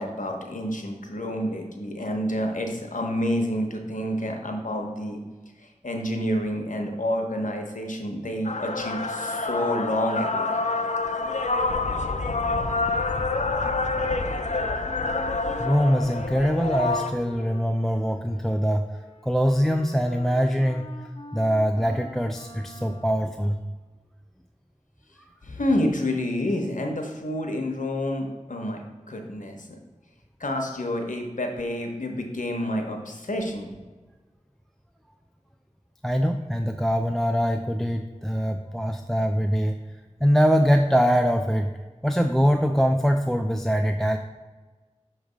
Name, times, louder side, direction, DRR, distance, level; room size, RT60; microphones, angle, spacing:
voice 1, 0.0-5.2 5.6-10.5 22.8-22.9 25.4-28.8 29.1-29.7 30.4-33.7, left 1 dB, 90° left, 3 dB, 0.9 m, -28 dB
sound 1, 8.4-17.1, left 3 dB, 70° left, 0.5 m, -27 dB
Wind instrument woodwind instrument, 14.2-23.2, left 2 dB, 40° left, 1.0 m, -45 dB
voice 2, 15.2-18.9 19.2-20.9 21.3-23.6 36.0-39.8 40.2-41.7 42.0-44.2, equal, 5° left, 5 dB, 0.3 m, -23 dB
6.1 x 3.3 x 5.0 m, 1.3 s
wide cardioid pair, 40°, 13 cm